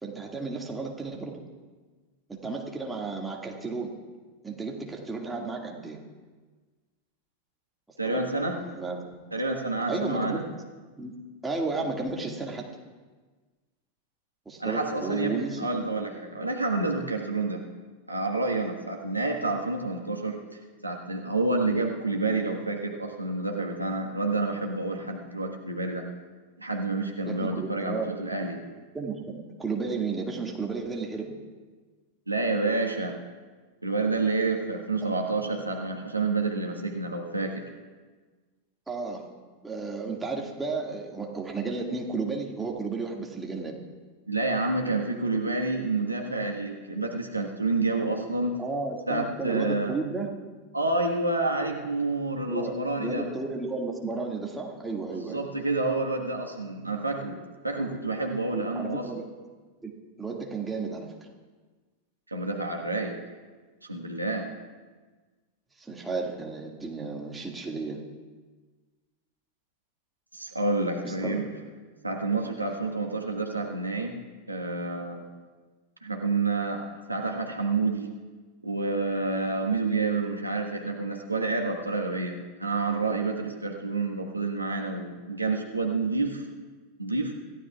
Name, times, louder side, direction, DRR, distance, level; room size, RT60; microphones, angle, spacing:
voice 1, 0.0-1.4 2.3-3.9 4.4-6.0 8.0-8.2 8.6-9.1 9.9-10.4 11.0-11.1 11.4-12.7 14.5-15.6 27.3-28.1 28.9-31.3 35.0-35.1 38.9-39.2 39.6-43.8 48.6-50.3 52.5-55.4 58.5-59.2 59.8-59.9 60.2-61.1 65.8-68.0 71.0-71.4, right 4 dB, 10° right, 0 dB, 2.0 m, -33 dB
voice 2, 8.0-8.6 9.3-10.4 14.6-17.6 18.1-20.4 20.8-26.1 26.6-28.6 32.3-33.1 33.8-37.7 44.3-48.5 49.1-49.9 50.7-53.3 55.1-57.4 57.6-59.1 62.3-63.2 63.9-64.5 70.3-71.5 72.0-74.2 74.5-75.2 76.0-78.1 78.6-86.4 87.0-87.3, right 3 dB, 85° right, 1 dB, 1.5 m, -29 dB
26.5 x 15.0 x 2.4 m, 1.4 s
figure-of-eight pair, 90°, 0 cm